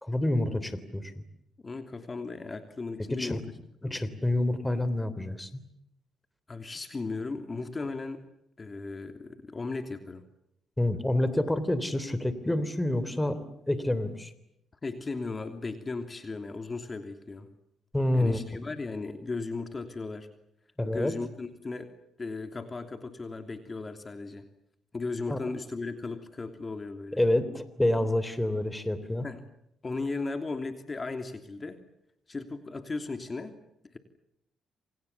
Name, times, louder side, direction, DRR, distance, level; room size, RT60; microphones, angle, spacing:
voice 1, 0.0-1.2 3.1-3.4 3.8-5.6 10.8-13.4 13.7-14.3 17.9-18.4 20.8-21.1 25.3-25.4 27.2-29.3, left 1 dB, 10° left, 13 dB, 3.5 m, -28 dB
voice 2, 1.6-3.4 3.8-4.0 6.5-8.2 8.6-10.2 14.8-17.5 18.1-20.3 20.8-21.9 22.2-24.5 24.9-27.2 29.2-29.4 29.8-31.8 32.3-33.6 33.9-34.0, left 3 dB, 30° left, 7 dB, 3.0 m, -36 dB
28.0 x 27.5 x 7.2 m, 0.79 s
cardioid pair, 90°, 0 cm